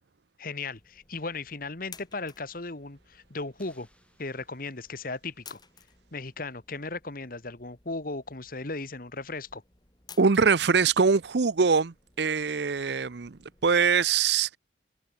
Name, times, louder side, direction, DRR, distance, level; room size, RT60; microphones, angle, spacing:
voice 1, 0.4-3.9 4.2-5.6 6.1-9.6, left 3 dB, 50° left, 1.7 m, -36 dB
sound 1, 0.7-13.8, left 6 dB, 25° left, 4.8 m, -56 dB
sound 2, 3.6-5.1, left 2 dB, 5° left, 4.9 m, -65 dB
voice 2, 10.2-14.6, right 5 dB, 65° right, 0.7 m, -23 dB
open air
head